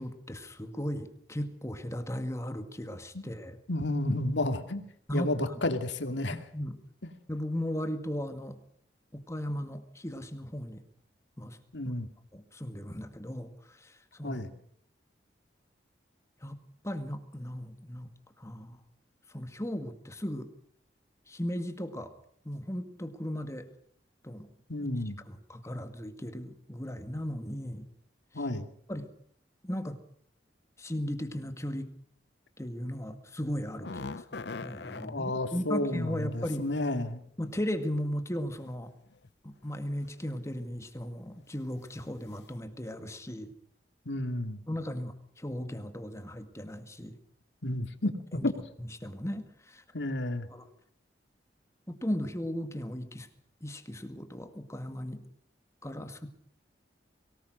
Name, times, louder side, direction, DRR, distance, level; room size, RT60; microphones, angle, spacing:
voice 1, 0.0-3.6 5.1-5.6 6.3-6.8 7.3-8.6 9.1-10.8 11.4-11.6 11.9-12.0 12.3-14.4 16.4-18.1 18.4-18.8 19.3-20.5 21.3-22.1 22.4-23.7 24.2-24.5 25.3-27.9 28.3-28.4 28.9-29.1 29.6-30.0 30.8-31.9 32.6-36.7 37.4-38.9 39.4-43.5 44.7-47.2 48.3-48.5 48.8-49.8 50.5-50.6 51.9-53.3 53.6-55.2 55.8-56.3, equal, 15° left, 8 dB, 1.9 m, -36 dB
voice 2, 3.7-4.8 5.1-6.4 11.7-12.1 14.2-14.5 24.7-25.2 28.3-28.7 34.9-37.2 44.1-44.6 47.6-48.5 49.9-50.5, left 1 dB, 85° left, 7 dB, 2.5 m, -31 dB
sound 1, 33.6-35.1 37.3-37.4 38.3-38.7 39.1-39.3 40.0-40.3 40.7-40.9 41.3-41.4, left 3 dB, 70° left, 0.8 m, -41 dB
23.5 x 18.5 x 6.4 m, 0.64 s
head